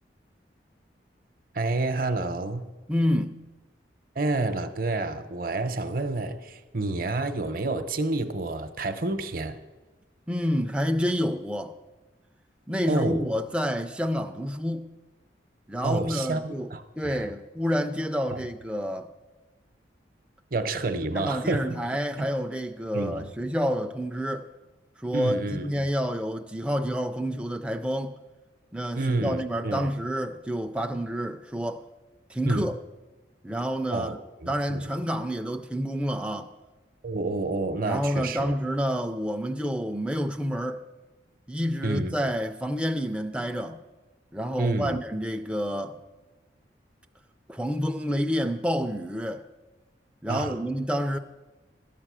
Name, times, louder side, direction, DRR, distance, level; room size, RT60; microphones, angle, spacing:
voice 1, 1.5-2.7 4.2-9.6 12.9-13.3 15.8-17.3 18.3-18.4 20.5-21.7 22.2-22.3 22.9-23.2 25.1-25.7 29.0-29.9 32.5-32.7 33.9-34.9 37.0-38.5 41.8-42.2 44.6-45.0 50.3-50.6, right 2 dB, 50° right, 0.7 m, -29 dB
voice 2, 2.9-3.4 10.3-11.8 12.7-14.9 15.7-19.1 21.1-24.5 25.0-28.2 28.7-31.8 32.3-32.8 33.4-34.2 34.5-36.5 37.8-40.8 41.5-43.8 44.3-46.0 47.5-49.4 50.2-51.2, equal, 5° right, 0.4 m, -28 dB
12.5 x 7.5 x 6.2 m
head